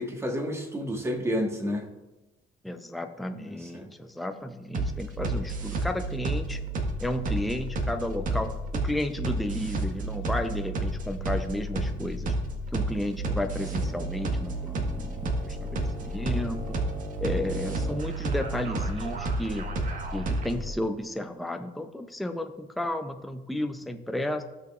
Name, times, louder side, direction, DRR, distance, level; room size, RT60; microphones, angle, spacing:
voice 1, 0.0-1.9 3.4-3.9, equal, 15° right, 3 dB, 1.5 m, -30 dB
voice 2, 2.6-6.6 7.0-12.4 12.7-16.8 17.2-19.7 20.1-24.4, left 1 dB, ahead, 6 dB, 0.5 m, -33 dB
sound 1, 4.7-20.7, right 2 dB, 50° right, 1.4 m, -31 dB
15.5 x 6.2 x 2.4 m, 1.1 s
cardioid pair, 110°, 17 cm